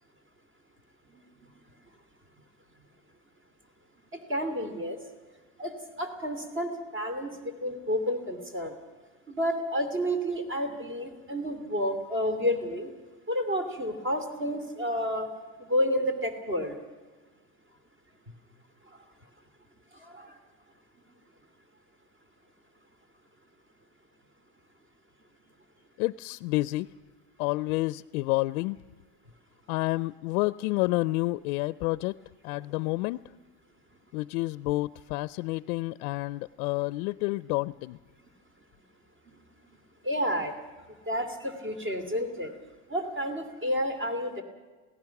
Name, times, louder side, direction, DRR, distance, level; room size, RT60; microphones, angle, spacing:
voice 1, 4.1-5.0 5.6-8.7 9.3-12.9 13.3-15.3 15.6-16.8 19.9-20.4 39.3-39.4 40.0-40.5 41.1-42.5 42.9-44.4, equal, 25° right, 8 dB, 2.9 m, -30 dB
voice 2, 26.0-26.9 27.4-28.8 29.7-32.2 32.4-33.3 34.1-38.0, left 20 dB, 75° left, 17 dB, 0.6 m, -29 dB
27.5 x 17.5 x 5.9 m, 1.3 s
cardioid pair, 155°, 43 cm